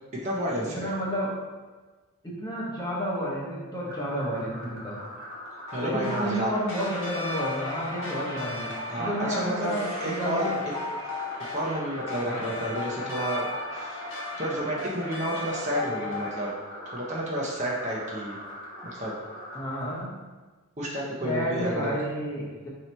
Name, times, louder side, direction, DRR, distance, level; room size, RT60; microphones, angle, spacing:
voice 1, 0.1-0.9 5.7-6.5 8.9-10.5 11.5-14.1 14.4-16.5 16.9-18.4 18.9-19.1 20.8-21.9, right 1 dB, 35° right, -4 dB, 0.6 m, -30 dB
voice 2, 0.6-1.3 2.2-5.0 5.8-8.7 9.0-10.6 12.3-12.6 19.5-20.1 21.2-22.7, equal, 20° left, -5 dB, 0.8 m, -31 dB
sound 1, 3.9-20.0, equal, 50° right, 1.4 m, -42 dB
sound 2, 5.7-16.5, left 3 dB, 60° left, 0.9 m, -36 dB
sound 3, 9.5-18.0 18.3-18.5, right 4 dB, 70° right, 1.1 m, -47 dB
3.1 x 2.8 x 4.2 m, 1.3 s
head